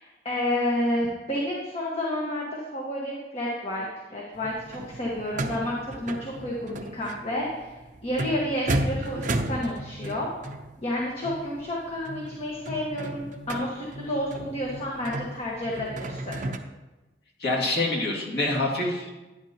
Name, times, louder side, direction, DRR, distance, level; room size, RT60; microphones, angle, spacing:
voice 1, 0.0-7.7 8.0-10.3 10.8-16.3, left 1 dB, 35° left, -4 dB, 1.5 m, -30 dB
sound 1, 4.3-16.6, right 1 dB, 45° right, 0.7 m, -34 dB
voice 2, 17.4-19.2, left 2 dB, 65° left, -2 dB, 2.3 m, -26 dB
11.0 x 10.0 x 2.9 m, 1.1 s
head